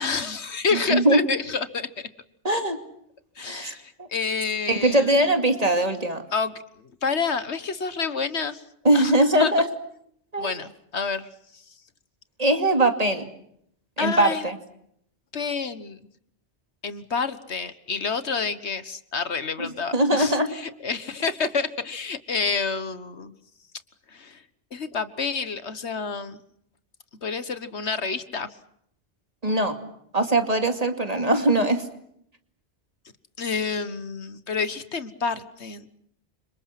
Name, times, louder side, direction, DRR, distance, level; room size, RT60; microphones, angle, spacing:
voice 1, 0.0-2.1 3.4-5.1 6.3-6.5 7.0-8.6 8.9-9.1 9.4-9.5 10.4-11.3 14.0-14.5 15.3-16.0 16.8-23.3 24.1-24.4 24.7-26.4 27.2-28.5 33.4-35.9, left 5 dB, 75° left, 13 dB, 1.7 m, -28 dB
voice 2, 0.9-1.3 2.4-2.8 3.4-4.1 4.7-6.2 8.8-9.7 10.3-10.5 12.4-13.3 14.0-14.6 19.6-20.5 29.4-29.8 30.1-31.8, right 1 dB, 35° right, 6 dB, 2.7 m, -21 dB
29.5 x 26.5 x 6.0 m, 0.71 s
omnidirectional pair, 1.1 m